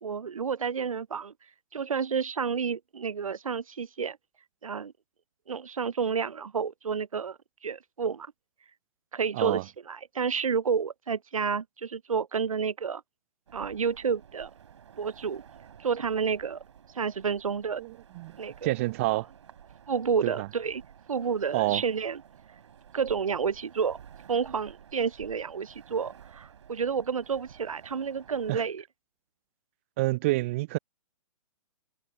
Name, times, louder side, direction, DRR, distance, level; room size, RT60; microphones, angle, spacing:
voice 1, 0.0-1.3 1.7-4.2 4.6-4.9 5.5-8.3 9.1-13.0 13.5-14.5 15.0-15.4 15.8-16.6 16.9-17.8 18.4-18.7 19.1-19.2 19.9-20.8 21.1-22.2 22.9-24.0 24.3-28.8, right 6 dB, 70° right, 0.7 m, -30 dB
sound 1, 13.5-28.6, right 8 dB, 55° right, 6.3 m, -52 dB
voice 2, 17.8-18.3 18.6-19.3 20.2-20.5 21.5-21.8 28.5-28.6 30.0-30.8, right 20 dB, 25° right, 0.3 m, -28 dB
figure-of-eight pair, 120°, 18 cm